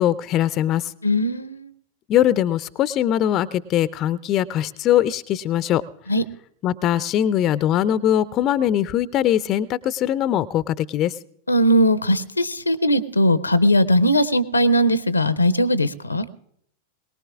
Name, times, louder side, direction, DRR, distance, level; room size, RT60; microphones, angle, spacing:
voice 1, 0.0-0.9 2.1-5.8 6.6-11.2, left 11 dB, 35° left, 17 dB, 0.4 m, -21 dB
voice 2, 1.0-1.7 6.1-6.2 11.5-16.3, equal, 80° left, 17 dB, 0.6 m, -19 dB
22.0 x 19.0 x 2.4 m, 0.71 s
figure-of-eight pair, 90°, 0 cm